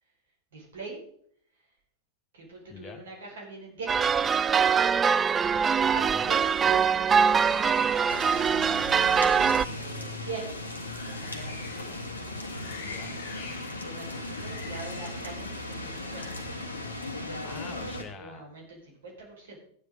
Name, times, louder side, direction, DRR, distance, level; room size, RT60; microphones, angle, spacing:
voice 1, 0.5-1.0 1.5-1.7 2.3-4.3 5.9-8.8 9.5-10.5 10.9-12.0 13.5-16.5 18.1-19.7, right 3 dB, 60° right, -1 dB, 4.9 m, -43 dB
voice 2, 2.7-3.0 5.9-6.3 12.8-13.2 17.4-18.5, left 5 dB, 25° left, 8 dB, 1.6 m, -44 dB
sound 1, 3.9-9.7, right 6 dB, 20° right, 0.3 m, -23 dB
sound 2, 6.3-17.1, left 4 dB, 55° left, 1.9 m, -48 dB
sound 3, 8.1-18.0, left 2 dB, 75° left, 1.5 m, -37 dB
14.5 x 9.9 x 3.8 m, 0.63 s
figure-of-eight pair, 90°, 0 cm